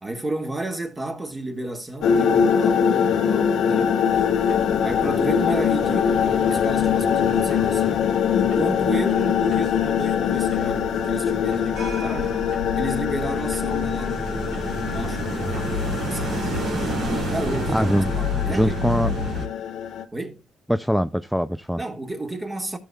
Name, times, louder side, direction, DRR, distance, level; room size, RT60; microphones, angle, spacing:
voice 1, 0.0-4.0 4.8-12.4 12.7-16.5 17.3-17.9 18.2-19.1 20.1-20.4 21.8-22.8, right 2 dB, 20° right, 1.9 m, -32 dB
sound 1, 2.0-20.0, left 8 dB, 75° left, 0.9 m, -23 dB
sound 2, 4.1-19.5, equal, 70° right, 2.9 m, -31 dB
voice 2, 17.7-18.1 18.5-19.1 20.7-21.8, equal, ahead, 0.4 m, -22 dB
14.0 x 6.9 x 2.3 m
cardioid pair, 90°, 0 cm